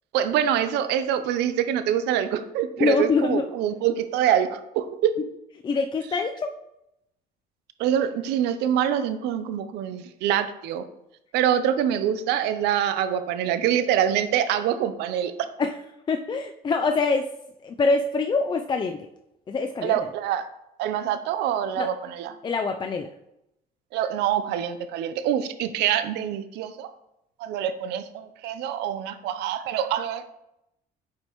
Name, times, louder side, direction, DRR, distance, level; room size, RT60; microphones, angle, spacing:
voice 1, 0.1-5.1 7.8-10.9 11.3-15.3 19.8-20.5 20.8-22.4 23.9-26.9 27.4-30.2, right 10 dB, 90° right, 11 dB, 0.6 m, -25 dB
voice 2, 2.8-3.4 5.6-6.5 15.6-15.7 16.1-17.3 17.6-19.1 19.5-19.9 21.8-21.9 22.4-23.1, left 4 dB, 25° left, 5 dB, 0.4 m, -24 dB
8.2 x 5.1 x 3.0 m, 0.84 s
cardioid pair, 110°, 17 cm